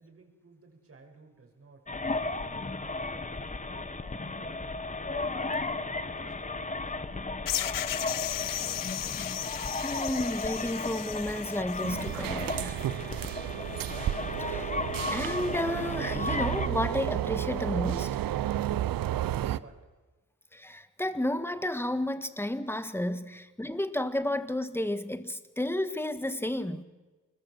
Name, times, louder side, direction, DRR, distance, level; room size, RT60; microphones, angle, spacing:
voice 1, 0.0-1.9 2.2-4.0 4.3-9.2 19.0-19.9 23.3-23.4, right 3 dB, 40° right, 6.7 m, -57 dB
sound 1, 1.9-16.7, left 3 dB, 20° left, 1.6 m, -35 dB
sound 2, 7.5-12.2, left 12 dB, 75° left, 0.7 m, -35 dB
voice 2, 9.7-12.8 14.4-14.8 15.1-18.2 20.5-26.8, left 1 dB, 5° left, 1.8 m, -32 dB
sound 3, 11.8-19.6, right 12 dB, 85° right, 0.8 m, -32 dB
25.0 x 21.5 x 7.7 m
cardioid pair, 80°, 33 cm